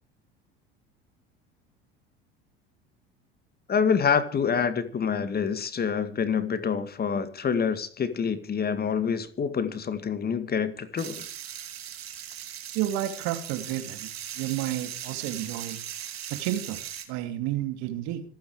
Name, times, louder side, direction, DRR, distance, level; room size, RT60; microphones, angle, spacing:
voice 1, 3.7-11.3, left 6 dB, 30° left, 2.2 m, -27 dB
sound 1, 11.0-17.0, right 10 dB, 85° right, 2.9 m, -39 dB
voice 2, 12.7-14.1 14.3-15.8 16.3-16.8 17.1-18.2, right 13 dB, 60° right, 2.8 m, -31 dB
25.5 x 9.4 x 4.8 m
hypercardioid pair, 75°, 30 cm